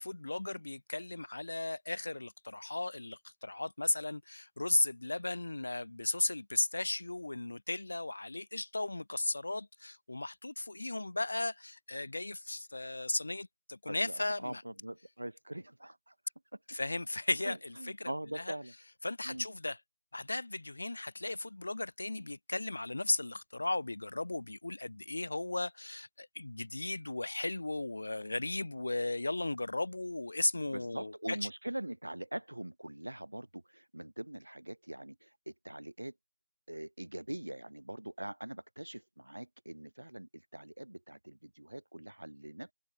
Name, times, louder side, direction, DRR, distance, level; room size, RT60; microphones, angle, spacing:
voice 1, 0.0-14.6 16.7-18.6 19.0-19.8 20.1-31.5, left 2 dB, 60° left, 0.6 m, -36 dB
voice 2, 13.9-14.2 14.4-16.1 17.4-17.6 17.8-18.7 19.3-19.5 30.7-36.1 36.7-42.7, right 1 dB, 75° right, 0.3 m, -43 dB
open air
figure-of-eight pair, 165°, 0 cm